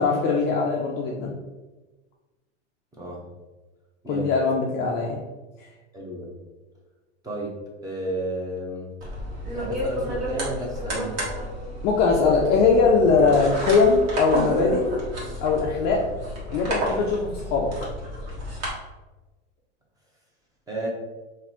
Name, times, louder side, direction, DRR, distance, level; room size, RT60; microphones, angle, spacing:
voice 1, 0.0-1.3 4.1-5.2 11.8-14.8 15.4-16.1 16.5-17.7, left 4 dB, 30° left, -1 dB, 0.4 m, -21 dB
voice 2, 4.0-4.3 5.9-6.3 7.2-7.6 7.8-8.9 9.5-11.2 20.7-20.9, right 1 dB, 10° right, -3 dB, 0.8 m, -32 dB
sound 1, 9.0-18.7, right 1 dB, 45° right, 1.4 m, -31 dB
4.0 x 2.6 x 2.8 m, 1.2 s
supercardioid pair, 125°, 34 cm